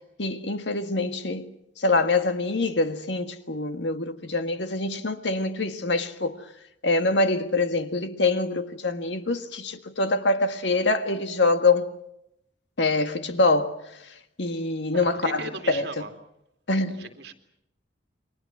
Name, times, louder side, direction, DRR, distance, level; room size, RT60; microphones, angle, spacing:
voice 1, 0.2-1.5 1.8-6.4 6.8-11.9 12.8-13.8 14.4-15.8 16.7-17.1, left 3 dB, 80° left, 1.7 m, -25 dB
voice 2, 14.9-16.1 17.0-17.3, right 3 dB, 65° right, 2.7 m, -37 dB
29.5 x 23.5 x 6.2 m
head